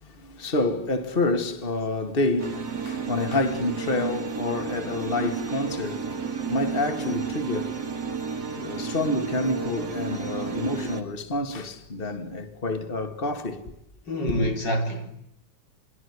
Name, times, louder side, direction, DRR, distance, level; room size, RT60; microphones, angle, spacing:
voice 1, 0.0-7.9 8.5-13.8 14.3-14.5, left 2 dB, 30° left, 2.3 m, -28 dB
sound 1, 2.4-11.0, right 5 dB, 65° right, 3.0 m, -32 dB
voice 2, 14.1-15.1, equal, 90° left, 4.9 m, -26 dB
26.5 x 23.0 x 9.7 m
omnidirectional pair, 1.9 m